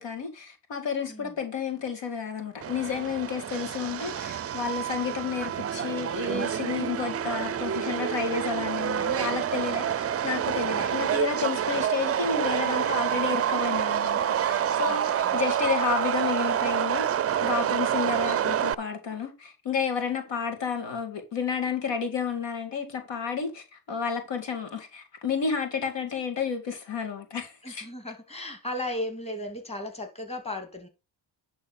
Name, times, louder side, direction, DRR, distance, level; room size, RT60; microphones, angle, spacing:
voice 1, 0.0-17.1 17.4-27.9, left 6 dB, 70° left, 2.2 m, -31 dB
Subway metro underground, 2.6-18.7, right 9 dB, 35° right, 0.5 m, -28 dB
voice 2, 14.8-15.4 27.6-30.9, left 1 dB, 15° left, 2.7 m, -36 dB
10.5 x 3.7 x 7.1 m
cardioid pair, 75°, 45 cm